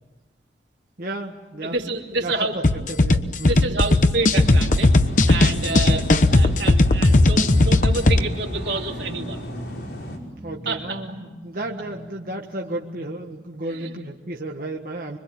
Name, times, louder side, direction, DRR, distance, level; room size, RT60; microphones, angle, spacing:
voice 1, 1.0-1.8 2.2-3.7 5.7-6.0 10.4-15.2, right 2 dB, 50° right, 0 dB, 1.7 m, -33 dB
voice 2, 1.6-2.6 3.0-4.9 5.3-6.0 6.3-9.5 10.6-11.0 13.7-13.9, right 3 dB, 80° right, 1 dB, 3.1 m, -28 dB
sound 1, 2.6-8.2, left 2 dB, 45° left, 1.0 m, -17 dB
sound 2, 4.2-14.2, right 1 dB, 10° right, 5.0 m, -42 dB
sound 3, 4.4-10.2, equal, 70° left, 5.5 m, -35 dB
25.5 x 24.5 x 8.8 m, 1.2 s
head